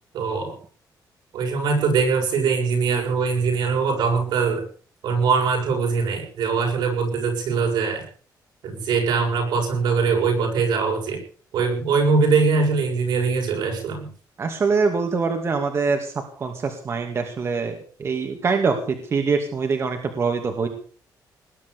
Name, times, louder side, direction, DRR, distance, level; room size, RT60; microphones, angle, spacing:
voice 1, 0.1-0.6 1.3-4.6 5.0-8.1 8.6-11.2 11.5-14.1, right 5 dB, 75° right, 1 dB, 7.4 m, -22 dB
voice 2, 14.4-20.7, right 4 dB, 35° right, 5 dB, 2.4 m, -24 dB
20.0 x 10.5 x 6.9 m, 0.43 s
cardioid pair, 145°, 7 cm